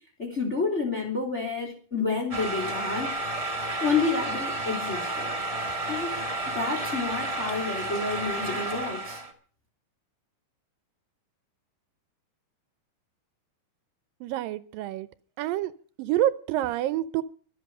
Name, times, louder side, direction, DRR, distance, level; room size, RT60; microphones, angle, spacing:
voice 1, 0.2-3.2 3.8-5.3 5.9-6.1 6.5-9.2, left 4 dB, 20° left, 3.4 m, -29 dB
sound 1, 2.3-9.3, right 2 dB, 20° right, 0.9 m, -31 dB
voice 2, 14.2-15.1 15.4-15.7 16.0-17.2, right 13 dB, 80° right, 2.5 m, -27 dB
24.0 x 8.2 x 5.5 m
omnidirectional pair, 4.0 m